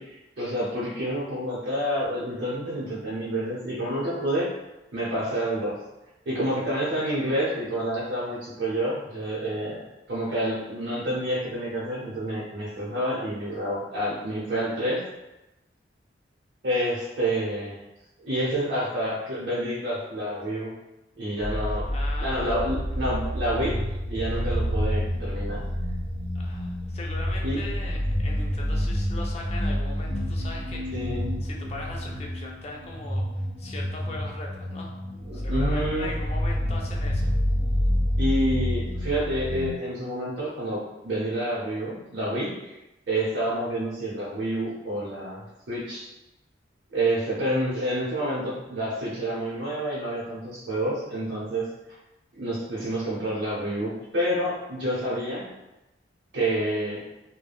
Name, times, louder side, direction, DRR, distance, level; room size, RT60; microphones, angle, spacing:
voice 1, 0.0-4.5 4.9-5.8 6.3-15.0 16.6-17.8 18.2-20.7 21.2-21.9 22.2-23.8 24.1-25.6 27.4-27.6 30.9-31.2 35.3-36.1 38.2-42.7 43.1-45.4 45.7-46.1 46.9-51.7 52.3-55.4 56.3-57.0, right 1 dB, 75° right, -8 dB, 0.8 m, -28 dB
sound 1, 21.4-39.7, equal, 30° right, 0.8 m, -28 dB
voice 2, 21.9-22.6 26.3-31.1 31.4-34.9 35.3-37.3, left 2 dB, 35° left, -1 dB, 0.4 m, -39 dB
3.3 x 2.2 x 2.2 m, 0.96 s
head